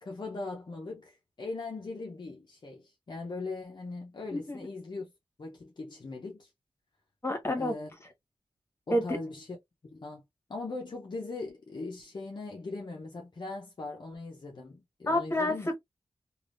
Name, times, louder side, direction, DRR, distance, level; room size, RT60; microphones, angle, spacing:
voice 1, 0.0-5.1 5.4-6.5 7.6-7.9 8.9-9.6 9.8-10.2 10.5-15.7, left 3 dB, 45° left, 0.7 m, -40 dB
voice 2, 4.3-4.7 7.2-7.7 8.9-9.2 15.1-15.8, left 1 dB, 25° left, 1.2 m, -29 dB
3.4 x 2.4 x 2.5 m
wide cardioid pair, 110°, 10 cm